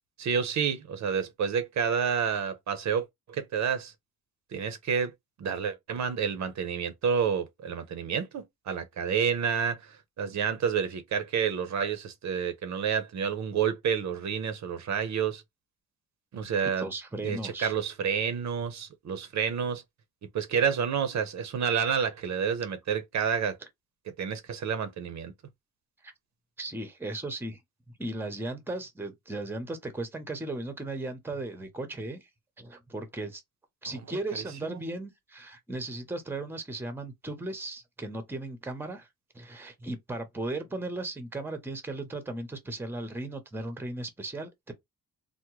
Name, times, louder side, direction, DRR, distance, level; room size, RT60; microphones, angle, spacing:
voice 1, 0.2-3.9 4.5-5.1 5.4-15.4 16.3-16.9 17.2-19.8 20.3-23.6 24.2-25.3 34.6-34.8, right 7 dB, 55° right, 0.6 m, -29 dB
voice 2, 16.8-17.7 26.0-26.1 26.6-27.6 28.0-32.3 32.6-33.4 33.8-39.1 39.3-44.7, right 2 dB, 5° right, 0.7 m, -36 dB
3.4 x 2.1 x 3.0 m
cardioid pair, 130°, 33 cm